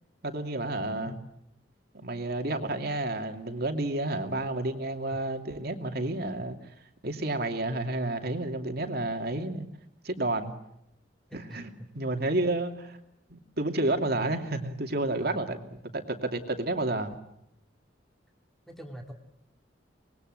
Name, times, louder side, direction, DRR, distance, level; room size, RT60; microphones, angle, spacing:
voice 1, 0.2-1.2 1.9-6.6 7.0-9.7 10.0-10.5 11.3-11.7 11.9-13.0 13.3-15.6 15.9-17.2, right 2 dB, 60° right, 5 dB, 2.6 m, -30 dB
voice 2, 11.3-11.9 15.2-15.6 18.7-19.1, equal, ahead, 2 dB, 2.6 m, -43 dB
25.5 x 21.0 x 8.0 m, 0.79 s
head